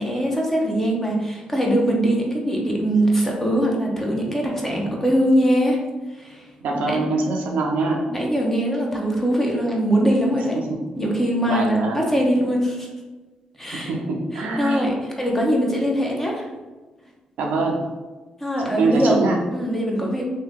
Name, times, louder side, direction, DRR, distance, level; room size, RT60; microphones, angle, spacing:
voice 1, 0.0-5.8 6.2-6.4 6.8-7.1 8.1-10.6 11.0-12.9 13.6-13.9 14.3-16.5 18.4-20.3, right 1 dB, 15° left, -1 dB, 0.9 m, -22 dB
voice 2, 6.6-8.0 10.7-10.8 11.4-12.1 13.7-14.9 17.4-17.8 18.8-19.4, right 3 dB, 80° right, 0 dB, 0.5 m, -24 dB
2.8 x 2.7 x 3.5 m, 1.2 s
supercardioid pair, 60°, 3 cm